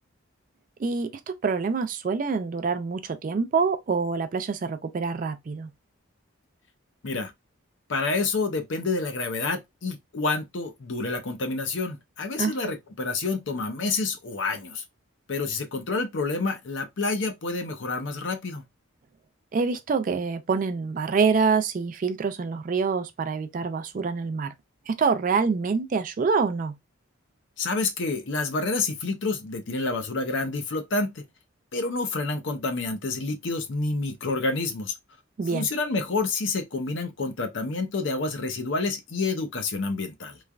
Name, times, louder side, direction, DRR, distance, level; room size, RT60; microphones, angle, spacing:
voice 1, 0.8-5.7 12.4-12.7 19.5-24.5 24.9-26.8 35.4-35.7, right 5 dB, 40° right, 0.3 m, -26 dB
voice 2, 7.9-14.8 15.3-18.6 27.6-31.2 31.7-34.9 35.5-40.4, left 3 dB, 65° left, 0.6 m, -28 dB
3.1 x 2.2 x 2.3 m
head